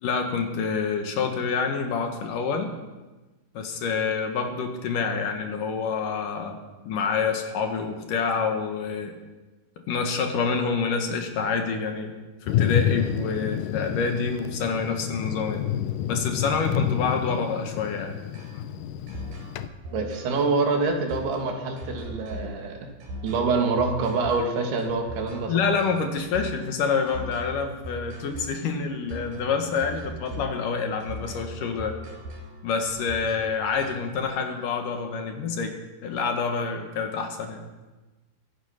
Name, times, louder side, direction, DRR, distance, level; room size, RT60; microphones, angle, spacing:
voice 1, 0.0-2.7 3.5-6.6 6.8-9.1 9.9-15.6 16.1-18.1 25.5-31.9 32.6-35.8 36.0-37.6, left 5 dB, 65° left, 4 dB, 2.7 m, -27 dB
Thunder, 12.5-19.7, left 10 dB, 80° left, 1.9 m, -29 dB
sound 1, 18.3-34.2, equal, 70° right, 6.2 m, -40 dB
voice 2, 19.9-22.8 23.2-25.6, right 4 dB, 85° right, 3 dB, 3.9 m, -26 dB
22.5 x 9.9 x 5.8 m, 1.2 s
omnidirectional pair, 4.5 m